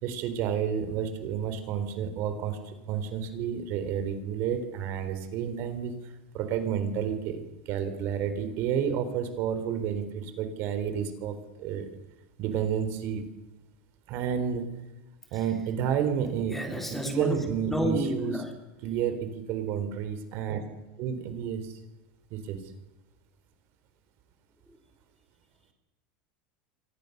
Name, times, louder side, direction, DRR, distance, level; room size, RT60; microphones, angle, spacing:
voice 1, 0.0-5.9 6.3-11.9 12.4-13.2 14.1-14.7 15.3-18.3 18.8-20.6 21.0-21.8 22.3-22.6, right 8 dB, 45° right, 9 dB, 3.9 m, -30 dB
voice 2, 16.5-17.4 17.7-18.5 24.7-24.8, equal, 5° left, 4 dB, 3.1 m, -31 dB
28.5 x 24.5 x 6.7 m, 1.0 s
supercardioid pair, 160°, 5 cm